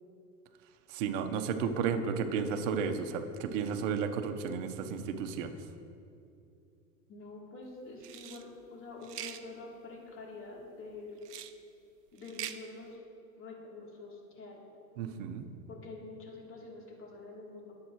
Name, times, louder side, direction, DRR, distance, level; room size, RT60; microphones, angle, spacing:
voice 1, 0.9-5.6 15.0-15.5, right 6 dB, 50° right, 7 dB, 1.3 m, -33 dB
voice 2, 7.1-11.2 12.1-13.0 13.4-14.6 15.7-17.7, left 3 dB, 25° left, -3 dB, 3.4 m, -47 dB
sound 1, 8.0-8.4 9.0-9.4 11.2-11.5 12.2-12.6, right 11 dB, 75° right, 0.8 m, -42 dB
21.5 x 8.7 x 3.2 m, 2.6 s
hypercardioid pair, 100°, 48 cm